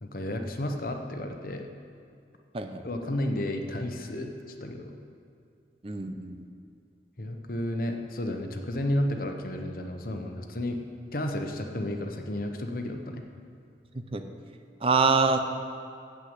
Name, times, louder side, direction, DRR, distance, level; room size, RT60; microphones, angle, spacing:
voice 1, 0.0-1.7 2.8-4.3 4.6-5.0 7.2-10.8 11.1-13.2, left 1 dB, 55° left, 4 dB, 1.0 m, -32 dB
voice 2, 5.8-6.4 13.9-14.2 14.8-15.4, right 4 dB, 30° right, 7 dB, 0.6 m, -25 dB
9.3 x 7.7 x 8.2 m, 2.5 s
head